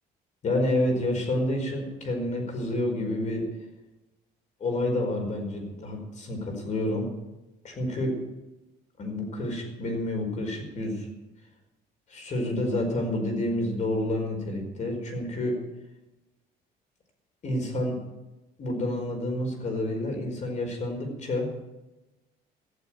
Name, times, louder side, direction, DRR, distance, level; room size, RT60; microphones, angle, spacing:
voice 1, 0.4-3.5 4.6-7.1 7.6-8.1 9.0-11.1 12.1-15.5 17.4-18.0 18.6-21.5, left 1 dB, 45° left, 2 dB, 4.9 m, -29 dB
15.0 x 7.6 x 9.1 m, 1.0 s
cardioid pair, 110°, 17 cm